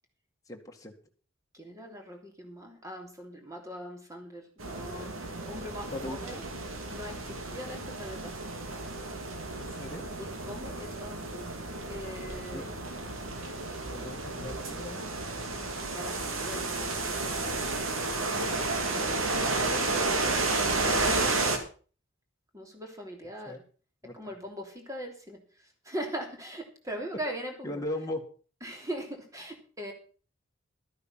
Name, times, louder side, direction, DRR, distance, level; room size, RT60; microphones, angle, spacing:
voice 1, 0.5-0.9 5.9-6.2 9.6-10.1 12.5-12.6 13.9-15.1 23.5-23.6 24.0-24.3 27.6-28.2, left 1 dB, 15° left, 1 dB, 1.8 m, -38 dB
voice 2, 1.5-6.4 6.9-8.3 10.2-12.7 15.8-18.5 18.9-20.4 22.5-23.6 24.1-27.8 28.6-29.9, equal, 15° right, 3 dB, 3.1 m, -41 dB
sound 1, 4.6-21.6, right 3 dB, 85° right, 2.5 m, -32 dB
13.0 x 9.7 x 5.7 m, 0.39 s
head